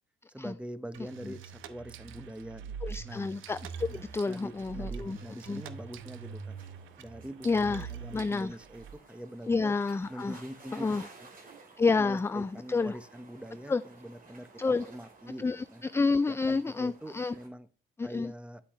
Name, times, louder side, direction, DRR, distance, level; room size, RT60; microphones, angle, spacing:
voice 1, 0.3-2.8 3.0-3.3 3.9-6.6 7.0-9.8 10.1-11.3 12.0-15.8 16.3-17.7 18.0-18.6, equal, 5° right, 13 dB, 0.9 m, -44 dB
sound 1, 0.9-8.9, right 6 dB, 90° right, 0.9 m, -44 dB
voice 2, 2.8-5.2 5.5-5.6 7.4-7.9 8.1-8.5 9.5-10.4 10.7-11.0 11.8-12.9 13.7-13.8 14.6-14.8 15.4-17.3 18.0-18.3, left 4 dB, 15° left, 14 dB, 0.3 m, -29 dB
sound 2, 3.7-17.5, right 3 dB, 45° right, 3.2 m, -56 dB
9.8 x 8.3 x 3.1 m, 0.36 s
cardioid pair, 90°, 20 cm